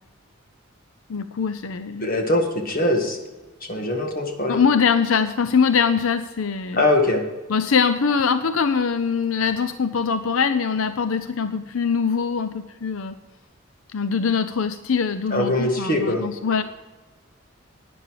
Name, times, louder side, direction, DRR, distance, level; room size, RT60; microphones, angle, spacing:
voice 1, 1.1-2.1 4.5-6.8 7.5-13.2 13.9-16.6, left 6 dB, 85° left, 11 dB, 0.6 m, -22 dB
voice 2, 2.0-3.2 3.6-4.6 6.8-7.2 15.3-16.2, left 1 dB, 45° left, 3 dB, 1.9 m, -22 dB
12.0 x 9.7 x 4.8 m, 1.2 s
head